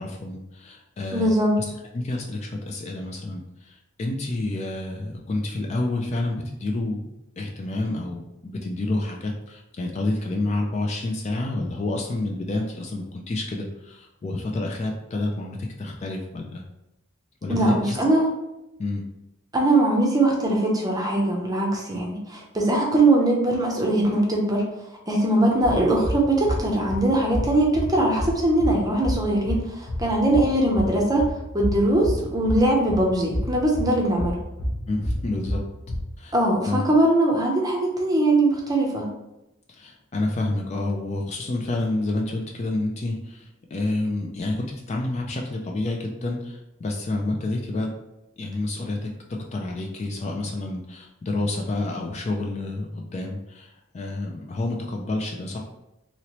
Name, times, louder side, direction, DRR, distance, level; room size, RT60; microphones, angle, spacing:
voice 1, 0.0-1.3 1.9-7.1 7.4-16.6 17.4-18.0 18.8-19.0 34.9-35.6 36.2-36.3 36.6-36.8 39.7-47.9 48.4-49.1 49.5-55.6, left 2 dB, 30° left, 1 dB, 0.3 m, -29 dB
voice 2, 1.1-1.5 17.5-18.3 19.5-24.6 25.1-31.3 31.5-34.4 36.3-39.1, right 1 dB, 20° right, -1 dB, 0.6 m, -21 dB
sound 1, 25.6-36.0, equal, 70° left, 0.7 m, -30 dB
3.0 x 2.9 x 2.9 m, 0.91 s
head